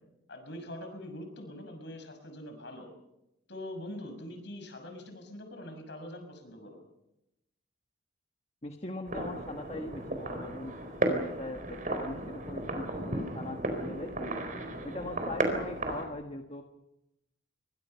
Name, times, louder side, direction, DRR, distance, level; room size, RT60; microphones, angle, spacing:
voice 1, 0.3-2.9 3.5-6.8, left 1 dB, 55° left, 6 dB, 6.2 m, -43 dB
voice 2, 8.6-14.4 14.8-16.6, left 2 dB, 30° left, 4 dB, 1.4 m, -41 dB
sound 1, 9.1-16.1, right 1 dB, 40° right, 4.2 m, -34 dB
27.0 x 23.0 x 5.7 m, 0.87 s
head